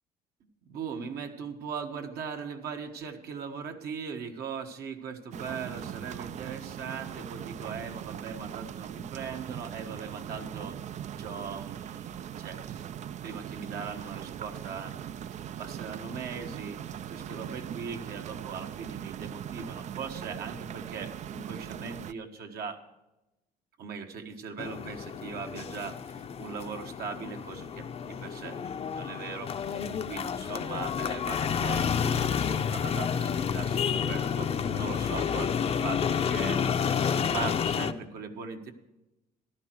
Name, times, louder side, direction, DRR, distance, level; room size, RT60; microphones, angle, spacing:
voice 1, 0.7-10.8 11.2-12.9 13.2-15.0 15.3-16.8 17.1-22.8 23.8-38.7, right 6 dB, 65° right, 4 dB, 1.5 m, -40 dB
sound 1, 5.3-22.1, right 10 dB, 45° right, 0.4 m, -40 dB
sound 2, 24.6-37.9, left 7 dB, 35° left, 0.6 m, -30 dB
14.5 x 11.5 x 4.6 m, 0.97 s
cardioid pair, 110°, 17 cm